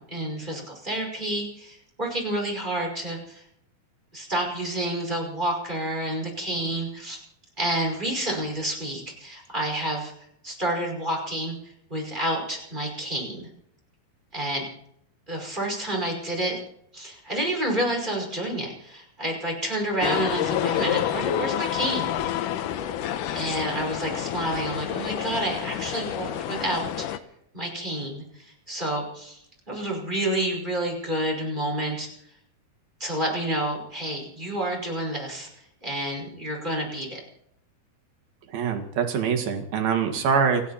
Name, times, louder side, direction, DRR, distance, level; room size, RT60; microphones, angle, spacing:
voice 1, 0.0-3.4 4.1-7.2 7.6-10.1 10.4-11.6 11.9-13.5 14.3-14.7 15.3-16.6 16.9-22.3 23.3-27.1 27.5-32.1 33.0-37.2, right 1 dB, 10° right, -1 dB, 5.4 m, -29 dB
sound 1, 20.0-27.2, left 10 dB, 70° left, 2.1 m, -28 dB
voice 2, 38.5-40.6, right 6 dB, 70° right, 5 dB, 3.7 m, -24 dB
29.5 x 11.5 x 4.3 m, 0.71 s
omnidirectional pair, 4.4 m